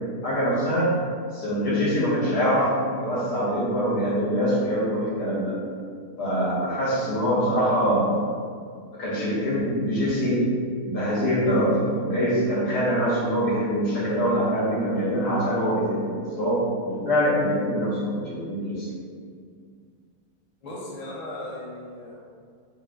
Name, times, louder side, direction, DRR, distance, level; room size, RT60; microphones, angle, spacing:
voice 1, 0.2-0.9 1.3-5.5 6.2-8.1 8.9-10.4 10.8-18.9, equal, 90° left, -8 dB, 1.7 m, -24 dB
voice 2, 20.6-22.2, left 1 dB, 40° left, -5 dB, 0.5 m, -37 dB
4.6 x 3.0 x 2.3 m, 2.1 s
omnidirectional pair, 1.7 m